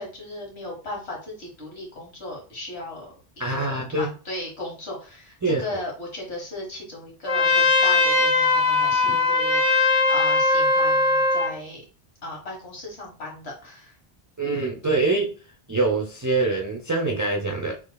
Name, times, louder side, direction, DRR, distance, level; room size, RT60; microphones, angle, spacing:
voice 1, 0.0-3.1 3.5-11.8 12.2-14.0, left 2 dB, 85° left, -1 dB, 1.8 m, -36 dB
voice 2, 3.4-4.1 5.4-5.6 9.1-9.2 14.4-15.3 15.7-17.7, right 3 dB, 20° right, 0 dB, 0.6 m, -24 dB
Trumpet, 7.3-11.5, left 3 dB, 35° left, 1.0 m, -20 dB
6.5 x 3.1 x 2.3 m, 0.37 s
omnidirectional pair, 1.1 m